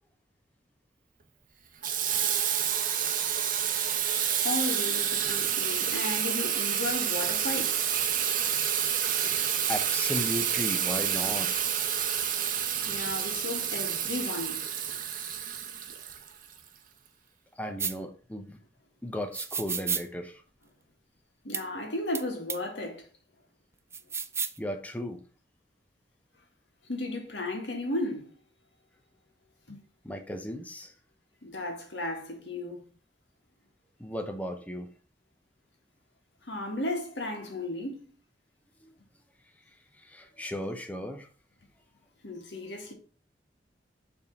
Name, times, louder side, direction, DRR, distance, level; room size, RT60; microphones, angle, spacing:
Water tap faucet / Sink (filling or washing), 1.8-16.6, right 9 dB, 50° right, 0.8 m, -29 dB
voice 1, 4.4-7.9 12.9-14.7 21.4-23.1 26.9-28.3 29.7-29.8 31.4-32.9 36.4-38.0 42.2-42.9, left 2 dB, 90° left, 1.9 m, -34 dB
voice 2, 9.7-11.7 17.6-18.6 19.0-20.4 24.6-25.2 30.0-30.9 34.0-34.9 40.0-41.3, equal, 10° left, 0.8 m, -35 dB
sound 1, 17.8-17.9 19.3-20.0 21.5-21.6 22.1-22.2 22.5-22.6 23.9-24.6, right 6 dB, 15° right, 0.4 m, -31 dB
7.2 x 3.6 x 5.3 m
head